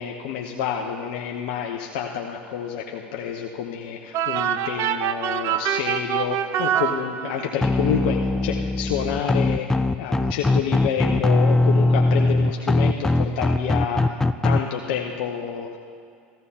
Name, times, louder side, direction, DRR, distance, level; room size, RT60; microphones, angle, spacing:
voice 1, 0.0-9.7 10.0-15.8, left 8 dB, 70° left, 1 dB, 0.9 m, -28 dB
sound 1, 4.1-7.7, right 9 dB, 55° right, 0.6 m, -25 dB
sound 2, 7.6-14.6, left 2 dB, 10° left, 0.3 m, -21 dB
15.5 x 15.0 x 2.8 m, 2.3 s
hypercardioid pair, 85°, 6 cm